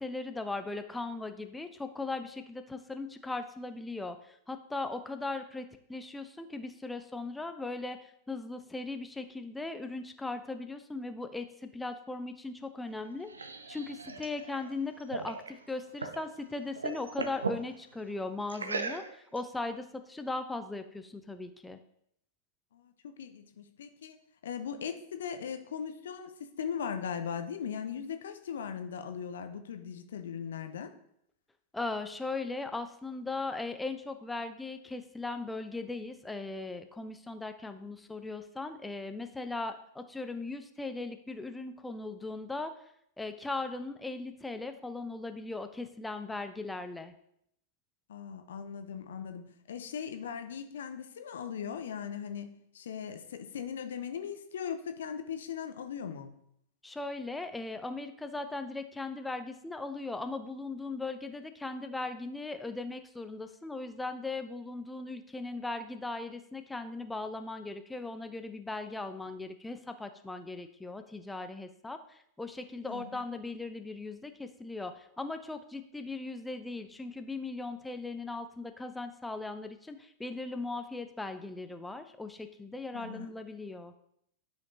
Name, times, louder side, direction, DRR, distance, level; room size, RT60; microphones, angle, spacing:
voice 1, 0.0-21.8 31.7-42.7 43.2-47.1 56.8-83.9, left 3 dB, 5° left, 8 dB, 0.5 m, -38 dB
sound 1, 12.9-16.3 16.6-17.6 18.5-19.4, right 4 dB, 75° right, 0.6 m, -38 dB
voice 2, 22.7-24.2 24.4-30.9 48.1-56.4 72.9-73.2 82.9-83.3, left 7 dB, 65° left, 8 dB, 0.7 m, -39 dB
11.5 x 5.1 x 2.7 m, 0.73 s
figure-of-eight pair, 90°, 0 cm